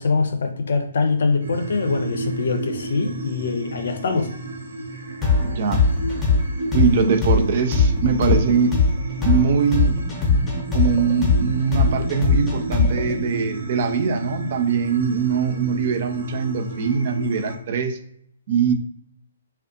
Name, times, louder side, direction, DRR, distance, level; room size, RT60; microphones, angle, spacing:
voice 1, 0.0-4.3, left 4 dB, 60° left, 0.5 m, -23 dB
sound 1, 1.4-17.6, right 3 dB, 80° right, 0.7 m, -32 dB
sound 2, 5.2-13.1, left 4 dB, 15° left, 0.7 m, -20 dB
voice 2, 5.4-5.8 6.7-8.7 9.2-10.0 10.7-18.0 18.5-18.7, right 6 dB, 45° right, 0.4 m, -22 dB
2.4 x 2.2 x 2.5 m
figure-of-eight pair, 125°, 0 cm